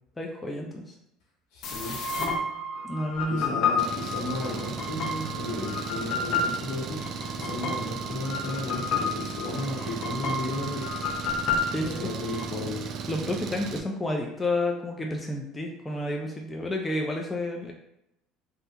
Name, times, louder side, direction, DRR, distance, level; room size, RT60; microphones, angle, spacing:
voice 1, 0.2-0.9 2.8-3.6 11.7-12.0 13.1-17.7, left 1 dB, 15° left, 0 dB, 0.4 m, -30 dB
voice 2, 1.5-2.0 3.3-7.0 7.3-10.8 11.8-12.9, left 2 dB, 75° left, -3 dB, 1.1 m, -34 dB
sound 1, 1.6-12.4, left 4 dB, 55° left, 0.6 m, -31 dB
Engine, 3.8-13.8, right 6 dB, 50° right, 0.3 m, -36 dB
3.3 x 2.4 x 2.8 m, 0.82 s
supercardioid pair, 105°, 0 cm